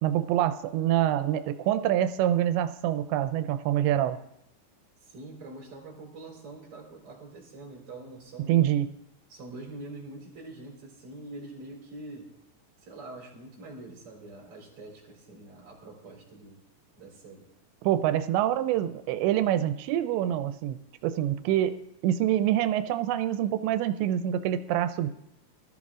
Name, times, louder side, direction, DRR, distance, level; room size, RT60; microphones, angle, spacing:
voice 1, 0.0-4.2 8.5-8.9 17.8-21.8 22.0-25.1, right 12 dB, 85° right, 10 dB, 2.9 m, -26 dB
voice 2, 5.0-8.7 9.3-12.3 12.8-16.6 17.0-17.5, right 2 dB, 35° right, -1 dB, 4.3 m, -45 dB
19.5 x 13.5 x 3.7 m, 0.78 s
omnidirectional pair, 5.0 m